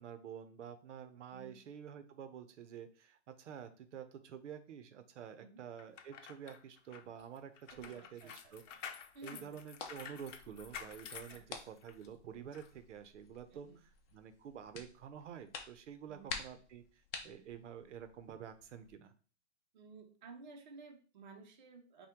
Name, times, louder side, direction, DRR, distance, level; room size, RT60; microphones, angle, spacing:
voice 1, 0.0-8.6 9.2-13.7 14.1-19.1, right 8 dB, 75° right, 10 dB, 0.7 m, -49 dB
sound 1, 5.8-12.1 12.5-12.7, left 7 dB, 90° left, 0.7 m, -50 dB
sound 2, 7.6-18.9, left 5 dB, 50° left, 0.7 m, -52 dB
voice 2, 7.7-8.8 9.1-9.6 11.1-11.6 13.5-13.8 16.1-16.4 19.7-22.1, right 4 dB, 40° right, 3 dB, 0.6 m, -55 dB
5.6 x 2.2 x 3.5 m, 0.40 s
hypercardioid pair, 180°, 36 cm